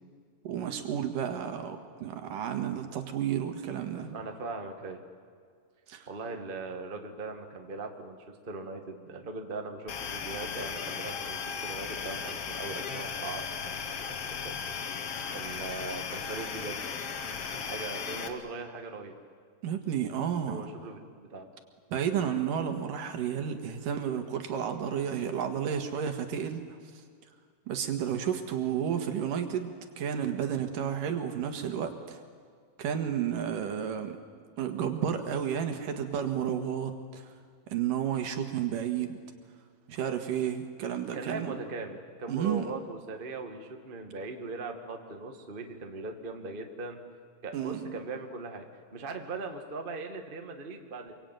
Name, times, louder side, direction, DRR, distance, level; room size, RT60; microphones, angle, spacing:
voice 1, 0.4-4.2 5.9-6.1 19.6-20.7 21.9-26.6 27.7-29.7 30.0-32.2 32.8-34.2 34.6-37.2 37.7-39.2 39.9-41.5 42.3-42.7 47.5-47.9, right 8 dB, 70° right, 6 dB, 3.2 m, -31 dB
voice 2, 4.1-5.0 6.1-14.0 14.4-14.6 15.3-16.8 17.5-19.1 20.5-21.5 41.1-47.0 47.4-48.6 48.9-51.1, right 3 dB, 25° right, 4 dB, 1.3 m, -39 dB
sound 1, 9.9-18.3, left 6 dB, 50° left, 2.1 m, -36 dB
26.5 x 23.5 x 9.2 m, 2.1 s
omnidirectional pair, 4.1 m